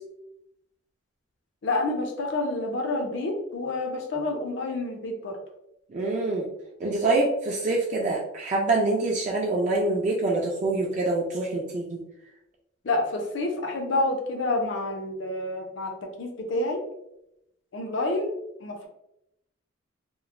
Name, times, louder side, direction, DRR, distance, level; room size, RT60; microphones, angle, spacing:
voice 1, 1.6-5.4 12.8-16.8 17.7-18.3 18.6-18.9, left 2 dB, 65° left, 2 dB, 0.5 m, -28 dB
voice 2, 5.9-6.5 6.8-12.0, right 2 dB, 35° right, -2 dB, 0.3 m, -25 dB
2.9 x 2.0 x 2.4 m, 0.84 s
head